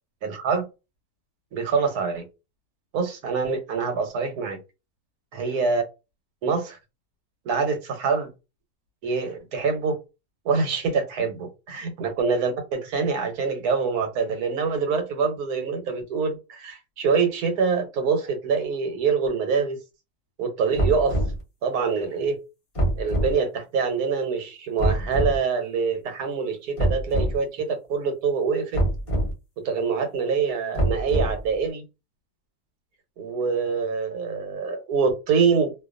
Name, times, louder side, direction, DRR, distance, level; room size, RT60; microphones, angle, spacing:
voice 1, 0.2-0.6 1.5-2.2 2.9-4.6 5.3-5.8 6.4-6.8 7.4-8.3 9.0-10.0 10.4-19.8 20.4-21.2 21.6-22.4 23.0-28.8 29.6-31.8 33.2-35.7, right 5 dB, 80° right, 1.3 m, -25 dB
sound 1, 20.8-21.4 22.8-23.3 24.8-25.4 26.8-27.4 28.7-29.3 30.8-31.5, right 1 dB, 40° left, 0.4 m, -24 dB
2.7 x 2.2 x 2.4 m
omnidirectional pair, 1.6 m